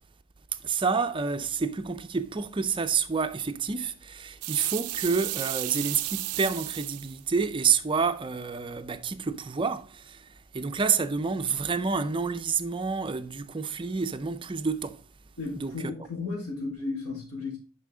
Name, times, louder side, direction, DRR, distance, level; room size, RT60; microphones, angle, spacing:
voice 1, 0.5-15.0 15.6-16.1, right 5 dB, 20° right, 0.4 m, -29 dB
sound 1, 4.4-7.2, right 18 dB, 85° right, 0.4 m, -33 dB
voice 2, 15.4-17.6, left 3 dB, 70° left, 4.2 m, -34 dB
6.9 x 5.6 x 3.8 m
head